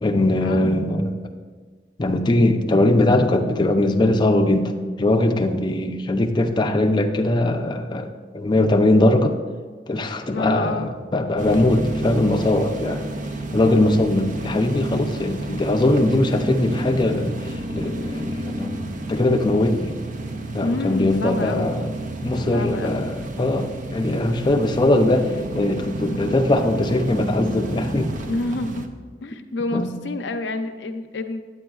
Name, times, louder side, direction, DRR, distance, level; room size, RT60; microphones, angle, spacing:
voice 1, 0.0-1.1 2.0-4.7 5.0-9.4 9.9-13.0 13.5-18.8 19.1-20.0 20.5-21.9 22.2-28.1 29.7-29.9, left 1 dB, 25° left, 4 dB, 0.5 m, -20 dB
voice 2, 10.3-10.9 20.6-21.7 22.5-23.1 28.3-28.9 29.2-31.4, left 2 dB, 80° left, 8 dB, 0.5 m, -28 dB
sound 1, 11.4-28.9, right 2 dB, 50° right, 0.5 m, -31 dB
9.0 x 8.9 x 2.3 m, 1.5 s
head